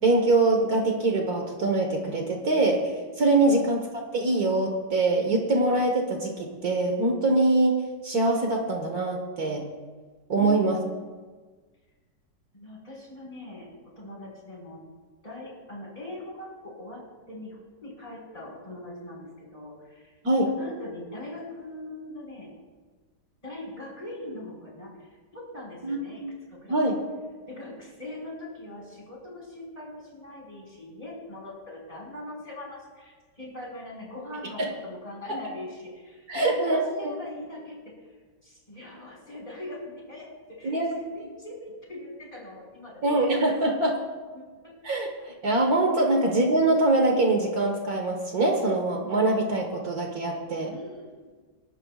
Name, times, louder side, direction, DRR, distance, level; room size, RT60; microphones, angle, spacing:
voice 1, 0.0-2.8 3.2-7.7 8.0-9.6 10.3-10.8 20.2-20.5 25.8-26.0 26.2-26.3 26.7-27.0 34.6-34.7 36.3-37.1 40.6-40.9 43.0-44.0 44.8-45.1 45.4-50.7, right 2 dB, 60° right, 1 dB, 1.9 m, -23 dB
voice 2, 10.3-11.1 12.5-13.7 14.0-14.8 15.2-20.2 20.5-22.5 23.4-26.2 26.5-27.0 27.5-43.3 44.3-45.0 50.7-51.3, left 1 dB, 20° left, -4 dB, 5.5 m, -41 dB
29.0 x 12.0 x 2.4 m, 1.4 s
omnidirectional pair, 1.8 m